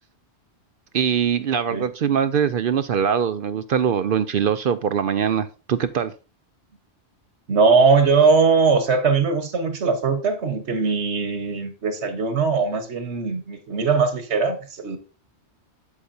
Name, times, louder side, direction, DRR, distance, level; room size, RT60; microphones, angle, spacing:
voice 1, 0.9-6.1, right 8 dB, 60° right, 0.7 m, -22 dB
voice 2, 7.5-15.0, right 4 dB, 80° right, 1.6 m, -20 dB
8.2 x 8.0 x 2.7 m
omnidirectional pair, 1.1 m